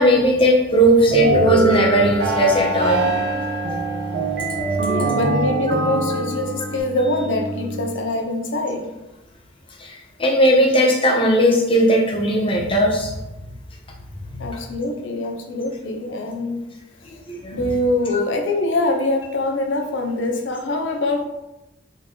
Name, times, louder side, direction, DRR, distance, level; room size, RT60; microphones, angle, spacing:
voice 1, 0.0-3.1 9.8-13.1 14.3-14.5 17.3-17.7, equal, 30° left, 0 dB, 0.8 m, -17 dB
sound 1, 1.1-6.8, right 2 dB, 60° right, 0.8 m, -23 dB
Singing, 1.3-7.9, right 1 dB, 15° right, 1.6 m, -32 dB
voice 2, 4.9-8.9 14.4-16.6 17.5-21.2, left 2 dB, 75° left, 3 dB, 0.7 m, -24 dB
4.4 x 3.9 x 3.0 m, 0.95 s
head